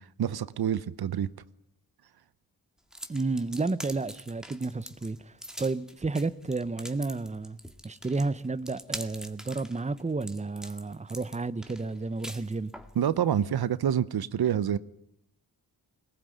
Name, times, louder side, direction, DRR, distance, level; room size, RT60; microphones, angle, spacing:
voice 1, 0.2-1.3 13.0-14.8, right 9 dB, 80° right, 0.9 m, -27 dB
sound 1, 2.9-13.0, equal, ahead, 2.1 m, -44 dB
voice 2, 3.1-7.6 7.8-12.7, right 3 dB, 20° right, 0.9 m, -31 dB
21.5 x 19.5 x 9.2 m
cardioid pair, 70°, 37 cm